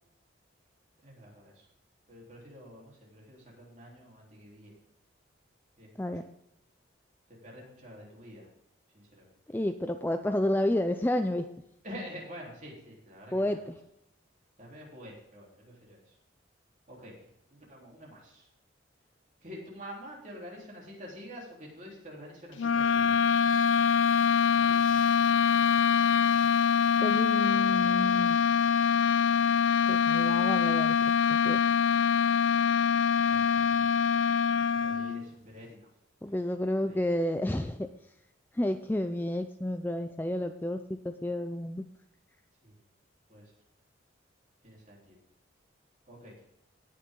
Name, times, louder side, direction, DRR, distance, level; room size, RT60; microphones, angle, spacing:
voice 1, 1.0-1.7 2.1-4.7 5.8-6.1 7.3-8.5 8.9-9.4 11.8-13.6 14.6-16.2 16.9-18.5 19.4-23.3 24.6-25.3 33.2-34.0 34.7-35.9 36.8-37.0 42.6-42.8 43.3-43.5 44.6-45.2 46.1-46.4, equal, 40° right, -3 dB, 3.7 m, -48 dB
voice 2, 9.5-11.4 13.3-13.7 27.0-28.4 29.9-31.1 31.4-31.6 36.2-37.9 38.5-41.8, left 1 dB, 10° left, 8 dB, 0.4 m, -30 dB
sound 1, 22.6-35.3, left 7 dB, 80° left, 0.5 m, -24 dB
18.5 x 6.6 x 3.8 m, 0.82 s
head